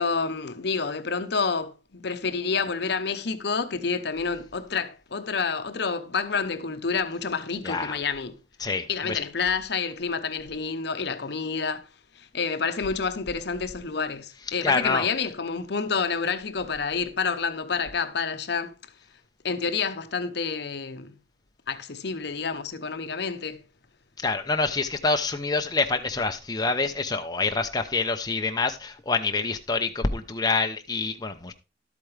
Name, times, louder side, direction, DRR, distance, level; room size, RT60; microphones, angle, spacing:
voice 1, 0.0-8.4 8.9-11.9 12.2-18.7 19.4-21.1 21.7-23.6, left 5 dB, 65° left, 0.9 m, -29 dB
voice 2, 7.6-8.0 8.6-9.2 14.6-15.1 24.2-31.5, left 3 dB, 20° left, 0.8 m, -26 dB
12.0 x 8.5 x 3.4 m
head